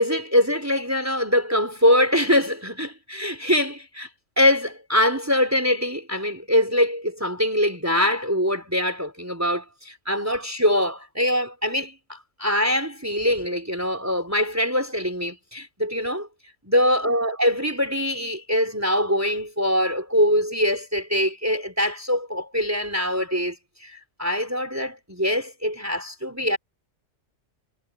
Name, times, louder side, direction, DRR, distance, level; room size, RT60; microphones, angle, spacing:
voice 1, 0.0-4.1 4.4-16.3 16.7-23.6 23.8-26.6, left 1 dB, 15° right, 4.0 m, -23 dB
omnidirectional pair, 1.3 m